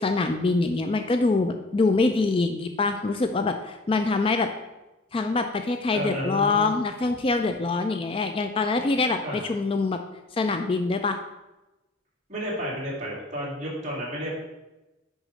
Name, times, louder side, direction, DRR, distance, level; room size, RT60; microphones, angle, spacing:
voice 1, 0.0-4.5 5.1-10.0 10.4-11.2, left 3 dB, 25° left, 7 dB, 0.3 m, -24 dB
voice 2, 5.9-6.7 9.2-9.4 12.3-14.3, equal, 35° right, -5 dB, 2.6 m, -31 dB
6.4 x 5.0 x 5.1 m, 1.0 s
head